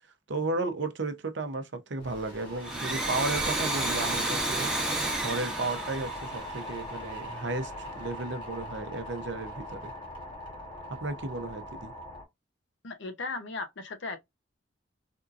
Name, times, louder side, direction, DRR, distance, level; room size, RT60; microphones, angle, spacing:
voice 1, 0.3-9.9 11.0-11.9, right 2 dB, 65° right, 0.7 m, -34 dB
sound 1, 2.0-12.2, equal, 25° left, 1.2 m, -40 dB
Domestic sounds home sounds, 2.5-7.0, right 2 dB, 5° right, 0.9 m, -31 dB
voice 2, 12.8-14.2, left 3 dB, 65° left, 0.7 m, -36 dB
3.6 x 2.6 x 2.5 m
head